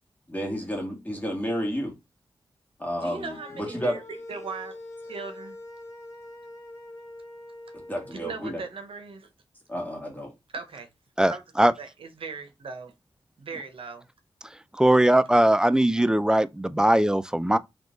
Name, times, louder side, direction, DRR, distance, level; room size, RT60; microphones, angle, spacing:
voice 1, 0.3-2.0 2.8-4.0 7.7-8.6 9.7-10.3, equal, 15° left, 1.6 m, -31 dB
voice 2, 2.9-4.8 5.0-5.6 8.1-9.3 10.5-10.9 11.3-11.4 11.8-12.9 13.4-14.1, right 4 dB, 80° right, 0.8 m, -38 dB
sound 1, 3.3-8.1, left 1 dB, 35° left, 1.9 m, -43 dB
voice 3, 11.2-11.7 14.7-17.6, right 1 dB, 10° right, 0.4 m, -20 dB
3.6 x 2.9 x 3.8 m
cardioid pair, 50°, 9 cm